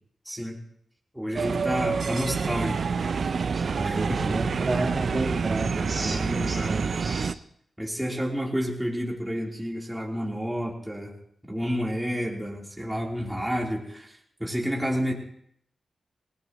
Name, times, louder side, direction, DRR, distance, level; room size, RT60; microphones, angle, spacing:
voice 1, 0.3-0.6 1.1-2.8 3.8-4.2 6.0-6.7 7.8-11.1 11.5-15.1, equal, 5° right, -2 dB, 3.5 m, -30 dB
sound 1, 1.4-7.4, right 5 dB, 65° right, 0.5 m, -27 dB
voice 2, 3.5-7.3, right 2 dB, 40° right, -1 dB, 2.5 m, -31 dB
19.5 x 19.0 x 3.0 m, 0.67 s
cardioid pair, 75°, 0 cm